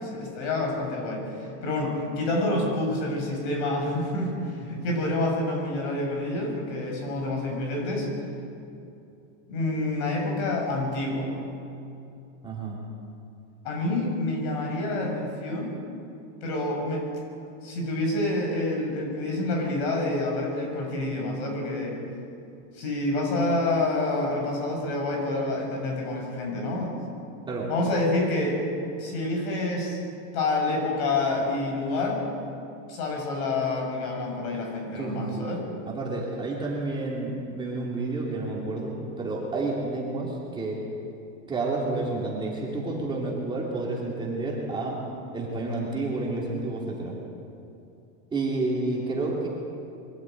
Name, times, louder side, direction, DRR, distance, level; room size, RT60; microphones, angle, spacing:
voice 1, 0.0-8.1 9.5-11.3 13.6-15.7 16.4-17.0 17.6-22.0 22.7-27.0 27.7-28.6 29.0-30.0 30.3-32.3 32.9-35.7, left 2 dB, 60° left, 1 dB, 6.9 m, -28 dB
voice 2, 12.4-12.8 27.5-27.7 34.9-35.5 35.9-40.8 41.5-45.0 45.3-47.2 48.3-49.5, right 2 dB, 10° right, -4 dB, 2.9 m, -30 dB
23.5 x 13.5 x 9.2 m, 2.7 s
supercardioid pair, 175°, 38 cm